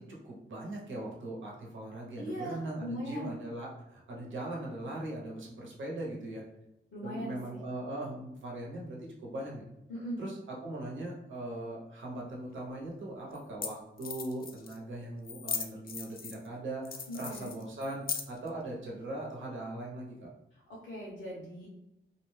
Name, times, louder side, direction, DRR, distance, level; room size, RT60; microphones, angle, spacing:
voice 1, 0.0-6.4 7.0-9.6 10.2-20.3, right 1 dB, 80° right, -3 dB, 0.8 m, -40 dB
voice 2, 2.2-3.3 6.9-7.6 9.9-10.2 17.1-17.5 20.8-21.7, equal, 65° left, -7 dB, 0.8 m, -39 dB
sound 1, 12.5-12.6 13.4-13.5 13.6-13.7 14.0-14.8 15.2-16.5 16.8-18.5, left 6 dB, 50° left, 0.4 m, -38 dB
2.4 x 2.1 x 3.1 m, 0.87 s
cardioid pair, 60°, 20 cm